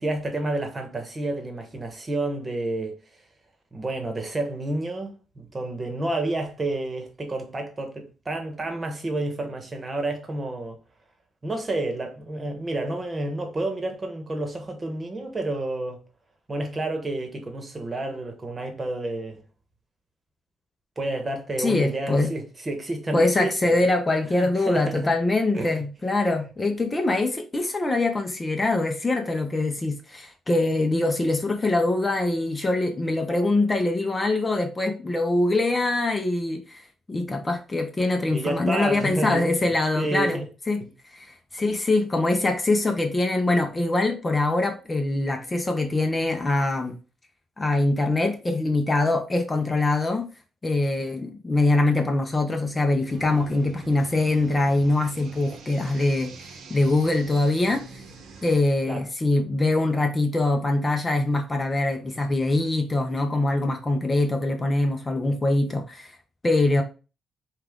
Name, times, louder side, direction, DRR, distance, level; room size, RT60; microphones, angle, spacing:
voice 1, 0.0-3.0 3.7-10.8 11.4-16.0 16.5-19.4 21.0-23.9 24.2-25.1 25.5-25.8 38.3-39.5 39.9-40.5 40.8-40.9 58.9-59.1, right 2 dB, 25° right, 1.2 m, -30 dB
voice 2, 21.6-22.3 23.1-36.8 37.1-40.4 40.7-40.8 41.1-47.0 47.6-50.3 50.6-58.0 58.4-66.2 66.4-66.8, left 2 dB, 25° left, 0.7 m, -23 dB
sound 1, 53.1-58.6, right 3 dB, 70° right, 0.9 m, -44 dB
5.5 x 2.4 x 3.6 m
cardioid pair, 90°, 0 cm